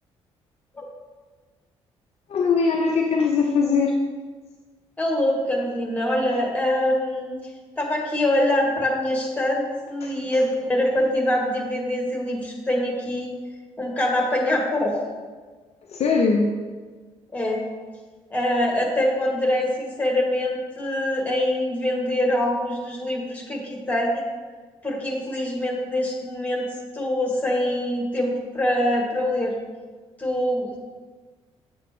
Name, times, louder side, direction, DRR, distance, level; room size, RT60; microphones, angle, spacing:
voice 1, 2.3-4.0 10.0-10.1 15.9-16.5, left 4 dB, 45° left, 1 dB, 0.6 m, -21 dB
voice 2, 5.0-7.4 7.8-13.3 13.8-15.0 17.3-17.6 18.3-24.2 24.8-26.7 26.9-29.6 30.2-30.8, left 1 dB, 10° left, -1 dB, 2.1 m, -24 dB
7.4 x 6.2 x 3.1 m, 1.4 s
figure-of-eight pair, 45°, 15 cm